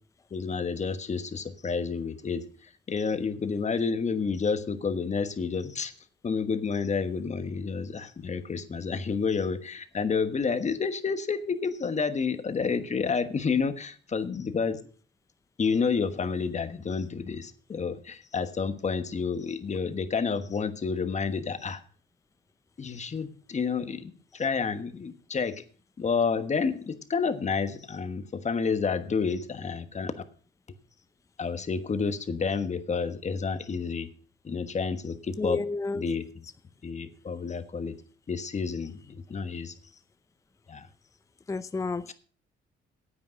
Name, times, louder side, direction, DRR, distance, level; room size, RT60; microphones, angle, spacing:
voice 1, 0.3-5.9 6.2-14.8 15.6-21.8 22.8-25.6 26.0-30.2 31.4-34.1 34.4-35.6 35.9-36.2 36.8-38.0 38.3-39.7 40.7-40.9 42.1-42.2, left 5 dB, 35° left, 1.2 m, -30 dB
voice 2, 35.4-36.0 41.5-42.1, left 3 dB, 15° left, 0.5 m, -31 dB
9.8 x 8.6 x 6.3 m
cardioid pair, 90°, 20 cm